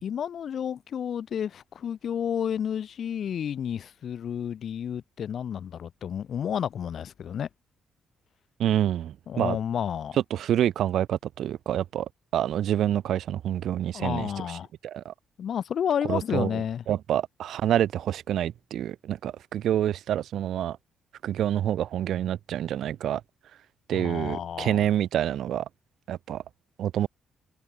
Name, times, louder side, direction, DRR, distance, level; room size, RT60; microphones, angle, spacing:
voice 1, 0.0-7.5 9.3-10.2 13.9-14.7 15.4-16.8 23.9-24.9, left 8 dB, 60° left, 1.9 m, -31 dB
voice 2, 8.6-9.6 10.3-14.6 14.8-15.1 16.0-20.8 21.2-23.2 23.9-25.7 26.1-26.4 26.8-27.1, right 11 dB, 70° right, 1.6 m, -27 dB
cardioid pair, 90°, 0 cm